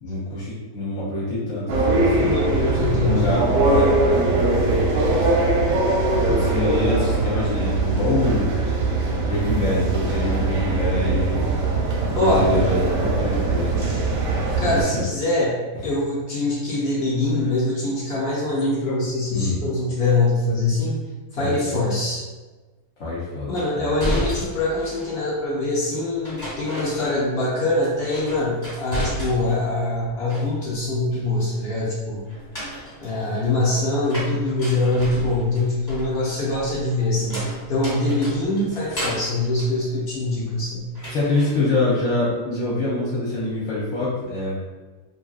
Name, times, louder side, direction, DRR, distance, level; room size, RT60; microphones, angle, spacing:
voice 1, 0.0-2.3 2.9-5.4 6.3-8.5 9.2-11.4 12.1-14.1 14.5-15.1 19.3-19.6 21.4-21.8 23.0-23.9 41.1-44.6, left 2 dB, 60° left, -6 dB, 1.0 m, -25 dB
sound 1, 1.7-14.8, right 3 dB, 65° right, 0.8 m, -21 dB
voice 2, 2.2-3.2 12.2-12.5 14.6-15.6 15.8-21.0 21.3-22.2 23.5-32.2 33.0-40.9, left 2 dB, 80° left, -6 dB, 0.5 m, -23 dB
sound 2, 23.6-25.2 26.2-27.5 27.8-29.7 30.0-30.9 32.3-40.6 41.0-41.6, equal, 20° left, 0.6 m, -33 dB
2.6 x 2.6 x 2.4 m, 1.3 s
omnidirectional pair, 1.8 m